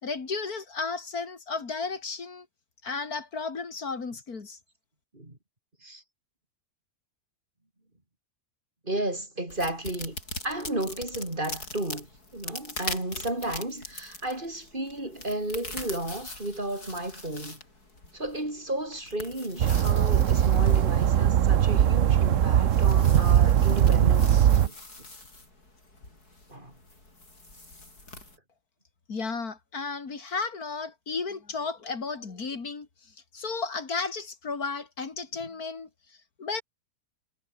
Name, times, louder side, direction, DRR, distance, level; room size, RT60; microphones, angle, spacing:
voice 1, 0.0-2.5 2.8-4.6 29.1-36.6, left 4 dB, 75° left, 3.0 m, -34 dB
voice 2, 8.8-10.2 10.4-17.6 18.1-24.8 26.5-26.7, right 1 dB, 30° right, 5.2 m, -33 dB
sound 1, 9.5-28.4, left 2 dB, 90° left, 7.5 m, -43 dB
sound 2, 19.6-24.7, right 10 dB, 60° right, 1.1 m, -20 dB
omnidirectional pair, 1.6 m